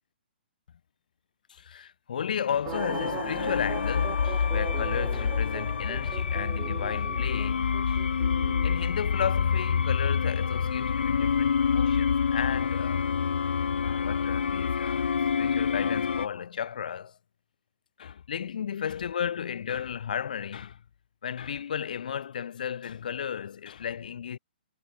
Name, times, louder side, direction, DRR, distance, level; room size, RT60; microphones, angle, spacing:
voice 1, 1.5-8.1 8.6-13.1 13.8-15.1 15.4-17.2 18.0-20.8 21.2-24.4, left 8 dB, 55° left, 4.8 m, -34 dB
sound 1, 2.6-11.1 11.4-11.5, right 32 dB, 20° right, 1.8 m, -41 dB
sound 2, 2.7-16.3, left 6 dB, 85° left, 1.1 m, -27 dB
hypercardioid pair, 175°, 5 cm